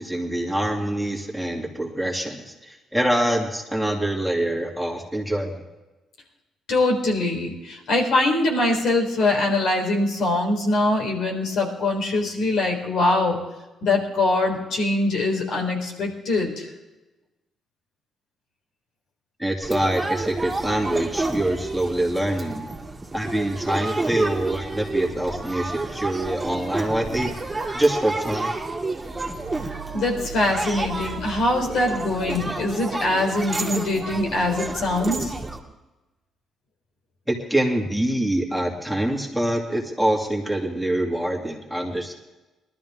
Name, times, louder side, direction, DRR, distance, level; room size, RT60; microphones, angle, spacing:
voice 1, 0.0-5.6 19.4-22.7 23.1-27.3 27.7-28.5 37.3-42.2, right 1 dB, ahead, -1 dB, 2.5 m, -25 dB
voice 2, 6.7-13.4 13.8-16.7 29.9-35.3, left 2 dB, 75° left, 0 dB, 4.0 m, -23 dB
sound 1, 19.6-35.6, right 2 dB, 15° right, 2.4 m, -30 dB
19.5 x 13.0 x 3.7 m, 1.1 s
cardioid pair, 90°, 0 cm